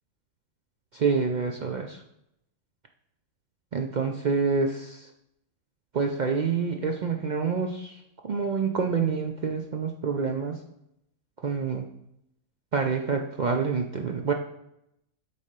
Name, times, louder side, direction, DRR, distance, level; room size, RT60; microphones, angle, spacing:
voice 1, 0.9-2.0 3.7-5.1 5.9-10.6 11.4-11.9 12.7-14.3, right 5 dB, 70° right, 4 dB, 0.4 m, -27 dB
8.3 x 4.2 x 5.2 m, 0.79 s
omnidirectional pair, 1.5 m